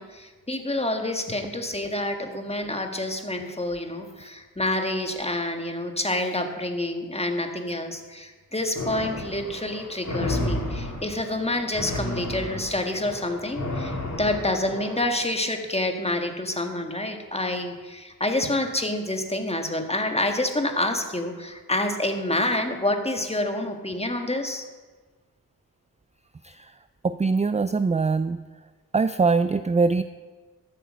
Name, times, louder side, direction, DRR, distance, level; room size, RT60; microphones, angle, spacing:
voice 1, 0.0-24.6, left 1 dB, 15° left, 5 dB, 1.7 m, -28 dB
sound 1, 8.8-15.2, left 1 dB, 45° left, 3.4 m, -32 dB
voice 2, 27.0-28.4 28.9-30.0, right 4 dB, 20° right, 12 dB, 0.4 m, -22 dB
13.0 x 7.9 x 6.4 m, 1.3 s
cardioid pair, 60°, 36 cm